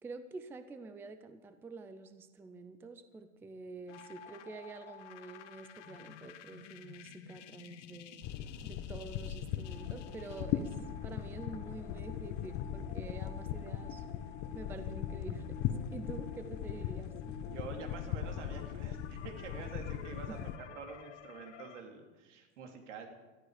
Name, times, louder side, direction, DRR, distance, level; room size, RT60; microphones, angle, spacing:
voice 1, 0.0-8.3 8.6-10.8 11.0-14.0 14.5-15.6 15.9-17.1 20.3-20.5, right 3 dB, 5° right, 10 dB, 0.5 m, -47 dB
sound 1, 3.9-21.8, left 8 dB, 80° left, 1.6 m, -51 dB
sound 2, 8.2-20.6, left 10 dB, 40° left, 1.0 m, -39 dB
voice 2, 17.2-20.4 20.7-23.1, right 5 dB, 80° right, 3 dB, 3.2 m, -47 dB
18.0 x 13.5 x 5.0 m, 1.3 s
supercardioid pair, 150°, 36 cm